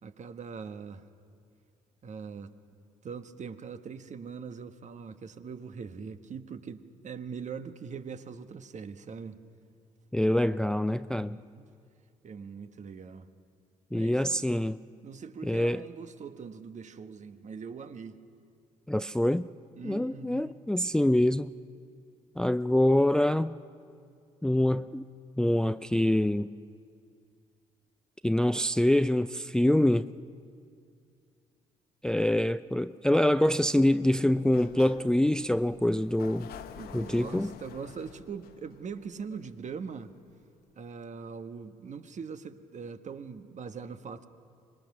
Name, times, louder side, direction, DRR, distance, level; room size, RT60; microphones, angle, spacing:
voice 1, 0.0-1.0 2.0-2.5 3.0-9.4 11.0-11.7 12.2-13.3 13.9-14.5 15.0-18.2 19.8-20.6 36.8-40.1 40.8-44.3, right 6 dB, 45° right, 1.3 m, -42 dB
voice 2, 10.1-11.4 13.9-14.8 15.4-15.9 18.9-19.5 19.8-21.5 22.4-23.5 24.4-25.0 25.4-26.5 28.2-30.1 32.0-36.5 36.9-37.5, left 1 dB, 5° left, 0.4 m, -25 dB
Sliding door, 34.3-40.0, left 9 dB, 65° left, 1.1 m, -49 dB
25.0 x 21.0 x 6.2 m
hypercardioid pair, 50°, 17 cm